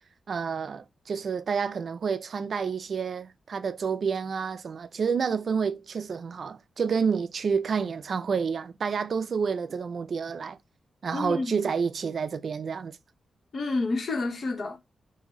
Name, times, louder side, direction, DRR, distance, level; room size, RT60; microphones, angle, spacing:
voice 1, 0.3-10.6 11.0-13.0, right 6 dB, 55° right, 0.3 m, -29 dB
voice 2, 11.1-11.6 13.5-14.8, left 3 dB, 50° left, 0.6 m, -29 dB
3.0 x 2.6 x 3.5 m
wide cardioid pair, 125°, 0 cm